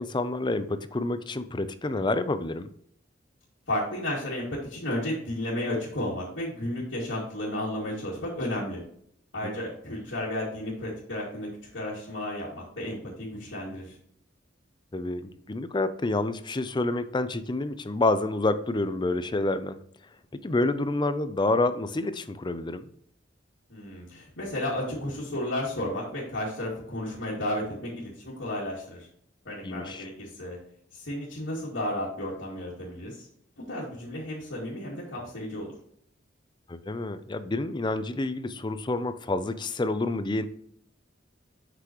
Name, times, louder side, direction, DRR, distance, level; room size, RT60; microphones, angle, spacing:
voice 1, 0.0-2.7 14.9-19.8 20.4-22.9 29.6-30.1 36.7-40.4, left 2 dB, 25° left, 12 dB, 0.5 m, -28 dB
voice 2, 3.7-8.8 9.3-14.0 23.7-29.1 29.4-30.6 30.9-33.3 33.7-35.7, left 1 dB, 85° left, -8 dB, 2.2 m, -33 dB
8.0 x 6.1 x 3.0 m, 0.65 s
head